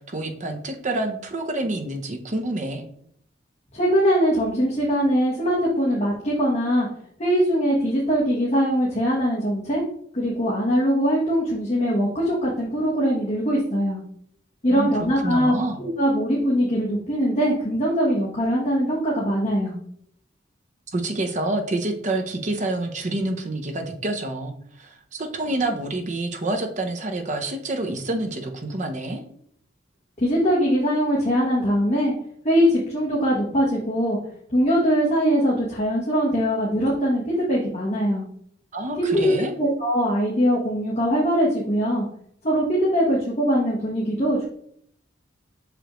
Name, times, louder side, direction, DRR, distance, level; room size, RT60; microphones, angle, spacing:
voice 1, 0.0-2.8 14.6-15.8 20.9-29.2 38.7-39.5, right 2 dB, 40° right, 4 dB, 0.8 m, -28 dB
voice 2, 3.7-6.9 7.2-9.8 10.1-14.0 14.6-19.7 30.2-32.1 32.4-34.2 34.5-38.2 39.0-42.0 42.4-44.4, equal, 35° left, -4 dB, 1.2 m, -22 dB
6.4 x 4.9 x 3.1 m, 0.66 s
head